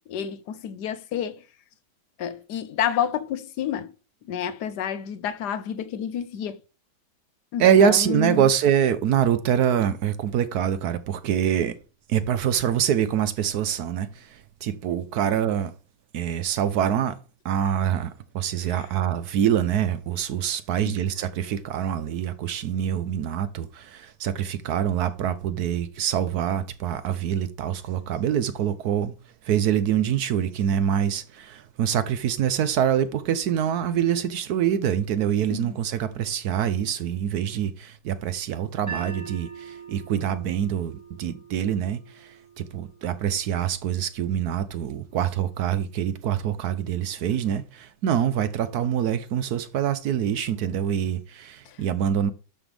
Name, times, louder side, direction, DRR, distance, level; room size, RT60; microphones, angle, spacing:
voice 1, 0.1-1.4 2.2-3.9 4.3-6.6 7.5-8.4 20.9-21.0 35.5-35.8, left 9 dB, 75° left, 1.2 m, -29 dB
voice 2, 7.6-11.8 12.1-15.7 16.1-17.2 17.4-29.1 29.4-52.3, right 9 dB, 70° right, 1.1 m, -25 dB
sound 1, 38.9-45.0, right 6 dB, 10° right, 1.8 m, -43 dB
12.0 x 5.6 x 3.4 m
omnidirectional pair, 1.9 m